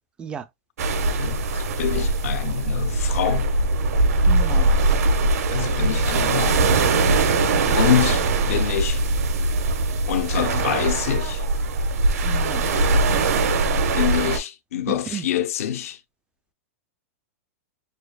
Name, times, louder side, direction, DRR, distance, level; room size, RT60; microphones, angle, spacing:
sound 1, 0.8-14.4, right 2 dB, 90° right, 1.3 m, -21 dB
voice 1, 1.2-3.5 5.5-6.6 7.7-9.0 10.1-11.4 13.9-16.0, left 10 dB, 70° left, 0.7 m, -25 dB
voice 2, 4.3-4.7 7.6-7.8 12.2-12.7 14.9-15.3, right 7 dB, 10° right, 0.4 m, -33 dB
6.6 x 2.4 x 2.3 m
supercardioid pair, 160°, 8 cm